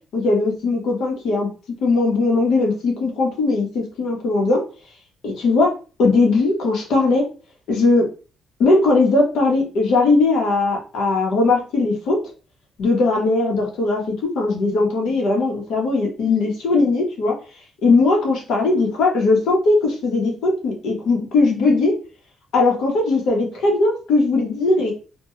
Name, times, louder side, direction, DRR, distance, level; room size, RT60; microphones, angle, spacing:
voice 1, 0.1-1.5 1.8-4.6 5.2-5.7 6.0-7.2 7.7-8.0 8.6-12.2 12.8-17.3 17.8-21.9 22.5-24.9, left 3 dB, 80° left, 0 dB, 0.8 m, -19 dB
2.2 x 2.1 x 2.9 m, 0.35 s
cardioid pair, 90°, 0 cm